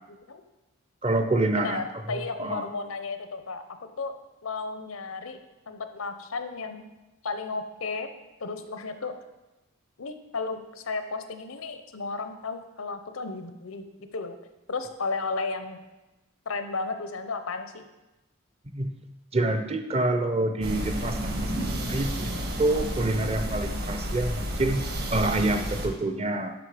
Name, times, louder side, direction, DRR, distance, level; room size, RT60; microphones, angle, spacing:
voice 1, 0.1-0.4 1.5-3.6 4.0-4.1 4.4-5.4 5.7-6.8 7.2-8.1 8.4-9.1 10.0-14.4 14.7-15.8 16.5-17.8, left 4 dB, 85° left, 9 dB, 0.8 m, -33 dB
voice 2, 1.0-1.8 2.1-2.7 18.7-18.9 19.3-22.3 22.6-26.5, right 2 dB, 30° right, 7 dB, 0.7 m, -27 dB
sound 1, 20.6-25.9, equal, 50° right, 1.5 m, -31 dB
12.0 x 5.3 x 5.0 m, 1.1 s
head